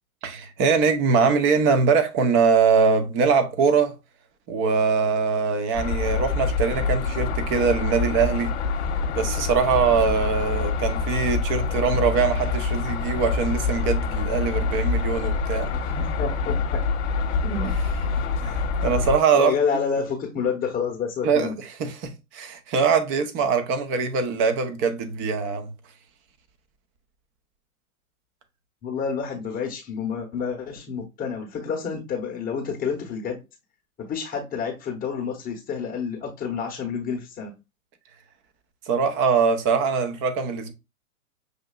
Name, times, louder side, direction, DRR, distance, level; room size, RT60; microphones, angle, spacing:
voice 1, 0.2-3.9 4.5-8.5 9.1-15.7 17.6-17.7 18.4-19.5 21.2-25.7 38.9-40.7, right 5 dB, 30° right, 0.8 m, -22 dB
sound 1, 5.7-19.2, left 4 dB, 55° left, 1.0 m, -26 dB
voice 2, 15.9-16.8 17.4-17.7 19.3-21.6 28.8-33.4 34.0-37.5, left 6 dB, 20° left, 0.9 m, -29 dB
6.4 x 2.7 x 2.3 m
hypercardioid pair, 110°, 42 cm